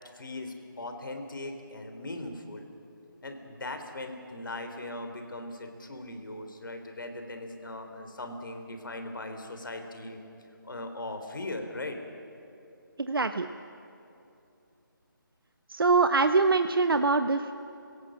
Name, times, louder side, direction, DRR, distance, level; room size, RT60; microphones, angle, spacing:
voice 1, 0.0-2.6 3.2-10.2 10.6-12.0, left 2 dB, 65° left, 6 dB, 3.5 m, -39 dB
voice 2, 13.0-13.5 15.7-17.5, right 4 dB, 80° right, 9 dB, 0.9 m, -24 dB
27.5 x 17.5 x 7.6 m, 2.8 s
figure-of-eight pair, 165°, 12 cm